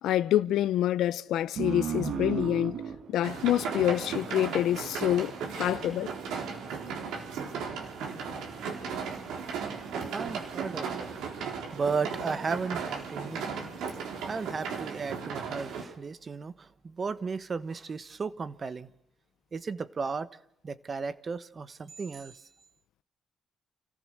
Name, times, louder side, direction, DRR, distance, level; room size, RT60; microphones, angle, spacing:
voice 1, 0.0-2.8 3.1-5.3 5.6-6.1, left 12 dB, 80° left, 0.7 m, -27 dB
sound 1, 1.6-4.7, right 7 dB, 70° right, 2.2 m, -35 dB
sound 2, 3.2-15.8, right 6 dB, 85° right, 3.8 m, -36 dB
voice 2, 9.5-9.9 10.1-11.1 11.7-13.6 13.9-14.0 14.3-18.9 19.5-20.3 20.6-22.5, right 5 dB, 40° right, 1.2 m, -35 dB
28.0 x 15.0 x 6.6 m
cardioid pair, 90°, 0 cm